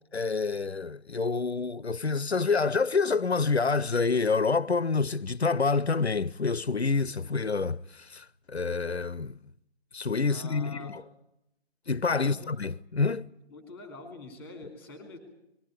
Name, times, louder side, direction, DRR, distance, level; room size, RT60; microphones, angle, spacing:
voice 1, 0.1-9.4 9.9-11.0 11.9-13.3, left 4 dB, 90° left, 0.7 m, -27 dB
voice 2, 10.3-10.9 12.1-12.5 13.5-15.2, left 2 dB, 5° left, 3.0 m, -45 dB
20.5 x 15.0 x 9.9 m
figure-of-eight pair, 150°, 31 cm